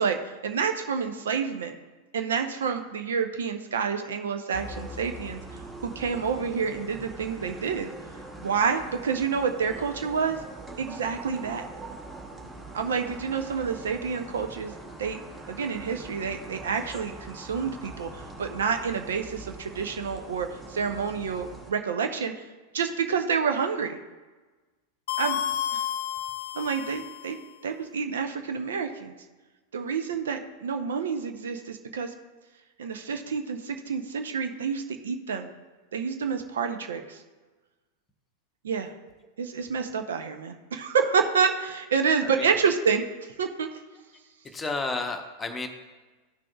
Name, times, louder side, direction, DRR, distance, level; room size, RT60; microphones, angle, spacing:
voice 1, 0.0-1.7 2.1-7.9 8.4-10.4 10.8-11.7 12.7-14.7 15.0-15.2 15.5-22.3 22.7-24.0 25.2-25.4 25.7-25.8 26.5-27.4 27.6-29.1 29.7-32.1 32.8-35.5 35.9-37.2 38.6-38.9 39.4-43.0 43.4-43.7, right 6 dB, 65° right, 6 dB, 0.6 m, -28 dB
sound 1, 4.5-21.7, right 2 dB, 10° right, 1.5 m, -43 dB
sound 2, 25.1-27.4, left 10 dB, 55° left, 0.3 m, -31 dB
voice 2, 42.2-42.5 44.4-45.7, left 3 dB, 15° left, 6 dB, 0.8 m, -32 dB
13.5 x 6.0 x 2.3 m, 1.3 s
figure-of-eight pair, 90°, 0 cm